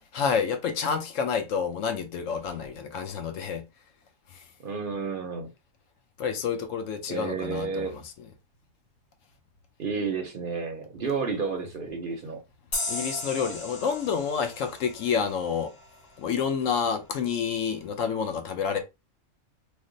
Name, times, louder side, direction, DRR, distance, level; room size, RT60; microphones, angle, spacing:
voice 1, 0.1-3.6 4.3-4.4 6.2-8.0 12.9-15.7 16.2-18.8, left 6 dB, 75° left, 0.9 m, -29 dB
voice 2, 4.6-5.5 7.1-8.0 9.8-12.4, right 5 dB, 55° right, 0.6 m, -31 dB
sound 1, 12.7-16.1, left 2 dB, 35° left, 1.0 m, -36 dB
3.1 x 2.0 x 3.7 m
omnidirectional pair, 1.4 m